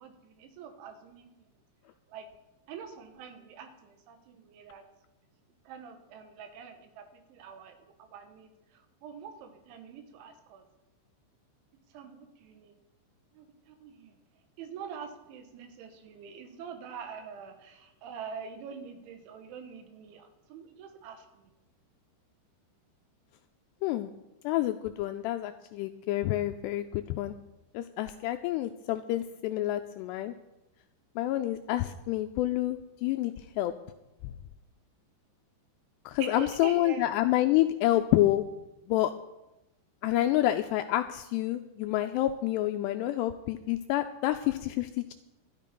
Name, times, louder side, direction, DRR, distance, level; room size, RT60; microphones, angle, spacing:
voice 1, 0.0-1.5 2.1-2.3 2.7-4.8 5.7-10.6 11.9-12.7 13.3-14.1 14.6-21.5 36.2-37.1, right 7 dB, 85° right, 7 dB, 3.7 m, -45 dB
voice 2, 24.4-27.3 27.7-30.3 31.2-33.7 36.1-38.4 38.9-39.1 40.0-45.1, left 14 dB, 85° left, 7 dB, 2.4 m, -28 dB
12.5 x 11.0 x 5.2 m, 0.99 s
omnidirectional pair, 5.3 m